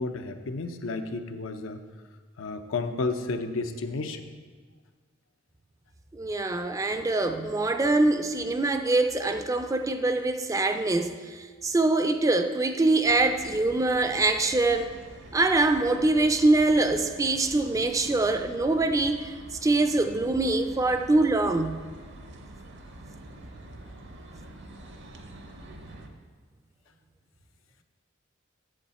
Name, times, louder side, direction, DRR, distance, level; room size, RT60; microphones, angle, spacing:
voice 1, 0.0-1.8 2.4-4.3, left 3 dB, 85° left, 0.6 m, -32 dB
voice 2, 6.1-14.9 15.3-19.3 19.6-21.8, right 2 dB, 15° right, 0.4 m, -24 dB
sound 1, 13.0-26.1, right 1 dB, 60° right, 0.8 m, -46 dB
8.3 x 6.9 x 4.2 m
head